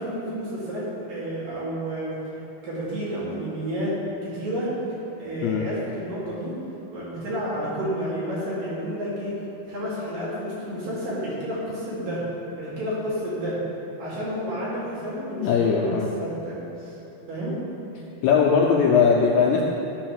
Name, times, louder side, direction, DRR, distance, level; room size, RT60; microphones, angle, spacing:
voice 1, 0.0-2.1 2.6-4.7 5.2-6.5 6.9-9.3 9.7-12.3 12.5-13.6 14.0-17.0 17.3-17.6, equal, 80° right, -9 dB, 4.1 m, -30 dB
voice 2, 15.4-16.1 18.2-19.6, left 6 dB, 85° left, -2 dB, 1.6 m, -19 dB
11.0 x 4.3 x 6.3 m, 3.0 s
omnidirectional pair, 3.9 m